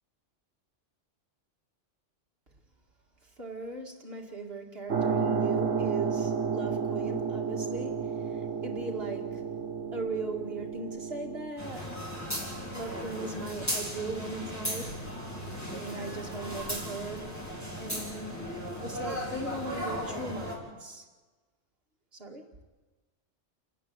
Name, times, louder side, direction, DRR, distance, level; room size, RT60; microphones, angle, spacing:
voice 1, 3.4-9.4 9.9-12.0 12.7-15.1 15.5-17.4 17.8-18.4 18.8-21.1 22.1-22.5, right 2 dB, 55° right, 2.5 m, -39 dB
sound 1, 4.9-11.5, right 6 dB, 80° right, 1.6 m, -31 dB
sound 2, 11.6-20.6, equal, 15° left, 4.4 m, -36 dB
29.0 x 11.0 x 9.5 m
omnidirectional pair, 1.2 m